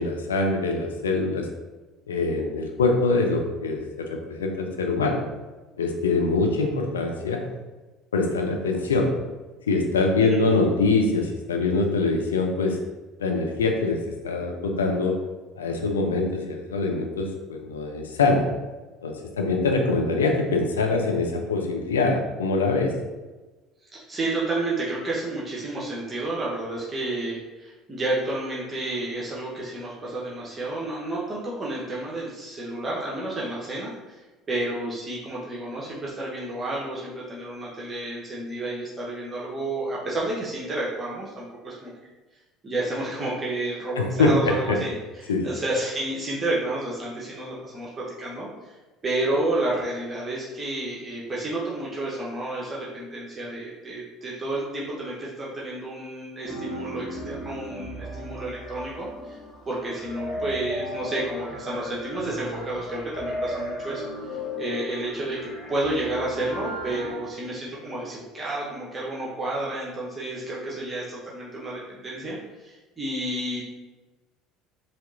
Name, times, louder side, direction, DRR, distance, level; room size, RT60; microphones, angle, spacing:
voice 1, 0.0-1.5 2.1-5.2 5.8-7.4 8.1-9.1 9.7-12.8 13.2-15.2 15.6-18.5 19.0-22.9 44.0-44.8 45.3-45.5, left 3 dB, 85° left, 2 dB, 0.5 m, -24 dB
voice 2, 23.8-41.9 42.6-48.8 49.0-59.4 59.7-73.6, right 2 dB, 25° right, -5 dB, 0.9 m, -31 dB
sound 1, 56.5-67.1, equal, 50° left, 1.3 m, -36 dB
4.9 x 2.9 x 2.5 m, 1.2 s
hypercardioid pair, 65°, 0 cm